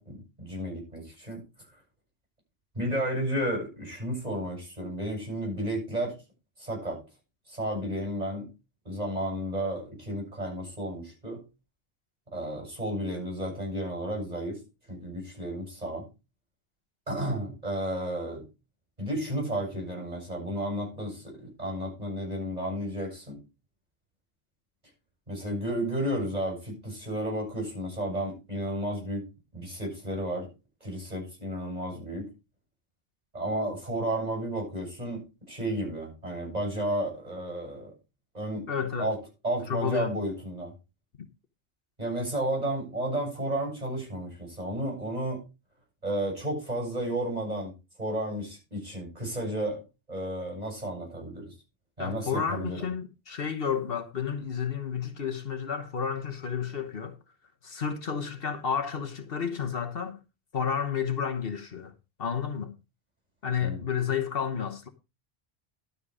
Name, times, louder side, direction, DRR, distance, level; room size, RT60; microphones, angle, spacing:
voice 1, 0.0-1.4 2.7-6.2 6.6-7.0 7.5-8.5 8.8-11.4 12.3-14.6 14.9-16.1 17.1-18.4 19.0-23.4 25.3-29.2 29.5-30.5 30.8-32.3 33.3-37.9 38.3-38.7 39.0-40.7 42.0-45.4 46.0-47.7 48.0-49.8 50.1-51.5 52.0-52.8 63.6-63.8, right 1 dB, 40° right, 8.1 m, -32 dB
voice 2, 38.7-39.1 39.6-40.1 41.2-41.3 52.0-57.2 57.6-60.2 60.5-61.9 62.2-62.8 63.4-64.9, left 7 dB, 65° left, 1.3 m, -31 dB
12.5 x 6.9 x 4.9 m
omnidirectional pair, 1.1 m